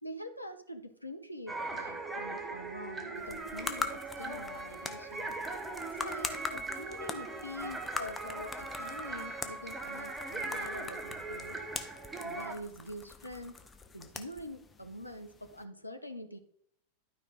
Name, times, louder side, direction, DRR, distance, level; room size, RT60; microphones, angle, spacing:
voice 1, 0.0-5.4 5.8-11.6 12.2-13.6 13.9-16.4, left 1 dB, 90° left, 7 dB, 0.9 m, -45 dB
sound 1, 1.5-12.5, right 2 dB, 10° right, 1.3 m, -40 dB
sound 2, 3.2-15.6, left 4 dB, 15° left, 0.9 m, -43 dB
12.0 x 5.3 x 3.9 m, 0.67 s
figure-of-eight pair, 90°, 0 cm